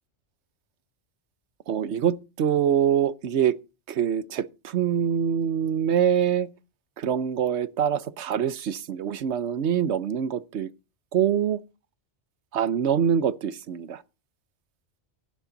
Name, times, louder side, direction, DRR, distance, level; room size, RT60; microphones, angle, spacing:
voice 1, 1.7-3.6 3.9-6.5 7.0-10.7 11.1-11.6 12.5-14.0, right 8 dB, 75° right, 1.1 m, -24 dB
16.0 x 7.2 x 4.0 m
omnidirectional pair, 1.2 m